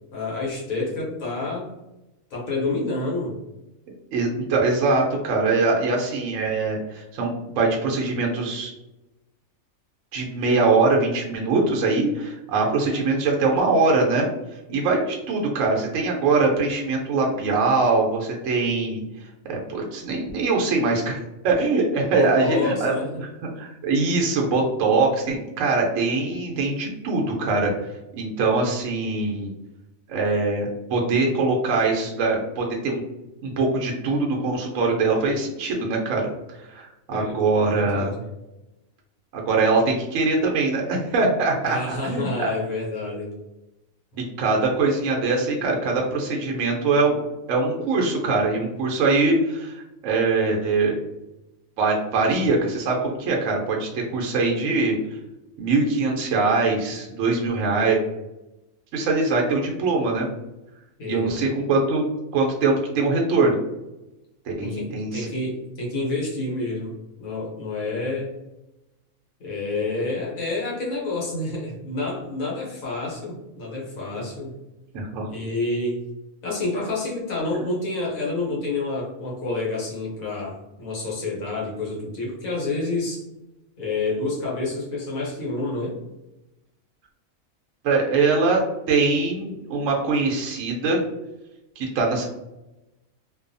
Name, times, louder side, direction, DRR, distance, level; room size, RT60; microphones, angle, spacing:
voice 1, 0.1-1.7 2.3-3.4 22.1-23.2 37.1-37.4 37.7-38.1 41.6-43.4 61.0-61.3 64.6-68.4 69.4-74.6 75.3-76.0 76.4-83.2 83.8-86.0, left 2 dB, 75° left, -4 dB, 1.3 m, -28 dB
voice 2, 4.1-8.7 10.1-14.3 14.7-19.0 19.5-23.3 23.6-27.7 28.1-29.5 30.1-33.0 33.4-36.3 36.6-38.1 39.3-42.5 44.4-47.2 47.5-51.0 51.8-55.0 55.6-58.0 58.9-60.3 61.1-62.0 62.3-63.6 64.4-65.3 74.9-75.3 87.8-88.6 88.9-91.0 91.8-92.3, right 3 dB, 70° right, -1 dB, 0.9 m, -22 dB
2.6 x 2.3 x 2.5 m, 0.97 s
omnidirectional pair, 1.4 m